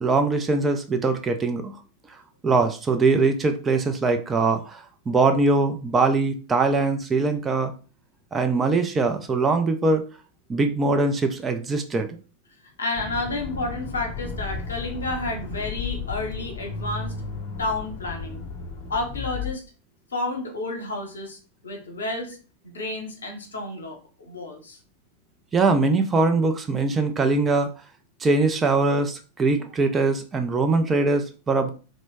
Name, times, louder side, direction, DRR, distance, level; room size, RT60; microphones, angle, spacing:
voice 1, 0.0-1.7 2.4-4.8 5.1-7.7 8.3-10.1 10.5-12.2 25.5-27.7 28.2-31.7, right 3 dB, 20° right, 6 dB, 0.4 m, -22 dB
voice 2, 12.8-17.2 17.6-18.4 18.9-19.6 20.1-21.4 21.6-22.4 22.6-24.8, left 2 dB, 70° left, 3 dB, 0.7 m, -30 dB
Accelerating revving vroom, 12.9-19.5, left 5 dB, 40° left, 0.7 m, -34 dB
3.0 x 2.0 x 3.2 m, 0.35 s
figure-of-eight pair, 90°, 0 cm